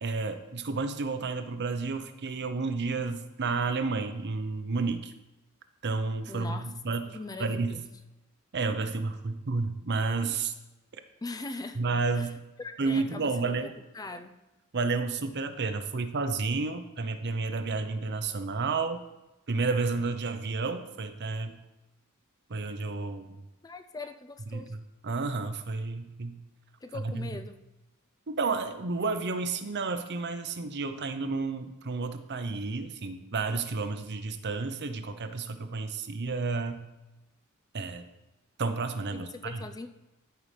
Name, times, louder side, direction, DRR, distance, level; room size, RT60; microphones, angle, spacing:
voice 1, 0.0-5.1 5.8-7.8 8.5-10.5 11.8-12.4 12.8-13.7 14.7-19.0 19.5-21.6 22.5-23.4 24.5-24.7 25.0-26.4 27.0-27.3 28.3-36.9 37.7-38.1 38.6-39.6, right 4 dB, 55° right, 9 dB, 0.7 m, -31 dB
voice 2, 6.3-6.7 7.0-7.8 11.2-11.8 12.1-12.3 12.6-14.4 23.6-24.7 26.8-27.6 39.1-39.9, left 3 dB, 15° left, 8 dB, 0.4 m, -41 dB
14.0 x 5.6 x 3.3 m, 1.0 s
head